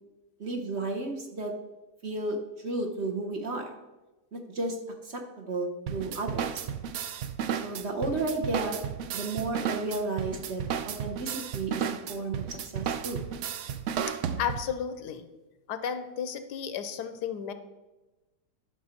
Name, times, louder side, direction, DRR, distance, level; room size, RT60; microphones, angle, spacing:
voice 1, 0.4-1.5 2.0-3.7 4.3-4.8 5.0-6.7 7.6-8.8 9.1-13.2, right 2 dB, 45° right, 2 dB, 1.1 m, -33 dB
sound 1, 5.9-14.8, right 8 dB, 70° right, 0.7 m, -33 dB
voice 2, 14.1-15.3 15.7-17.5, left 8 dB, 85° left, 10 dB, 1.3 m, -33 dB
10.5 x 6.2 x 4.3 m, 1.1 s
omnidirectional pair, 1.8 m